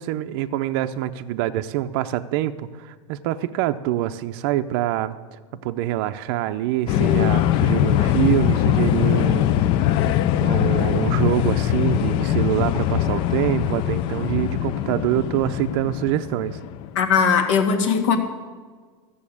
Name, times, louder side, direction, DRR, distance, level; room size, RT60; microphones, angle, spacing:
voice 1, 0.0-9.5 9.9-10.0 10.4-16.6, right 13 dB, 45° right, 9 dB, 0.5 m, -25 dB
sound 1, 6.9-16.9, left 12 dB, 30° left, 0.4 m, -21 dB
voice 2, 17.0-18.2, left 6 dB, 65° left, 6 dB, 1.9 m, -19 dB
14.0 x 7.0 x 8.5 m, 1.5 s
supercardioid pair, 160°, 17 cm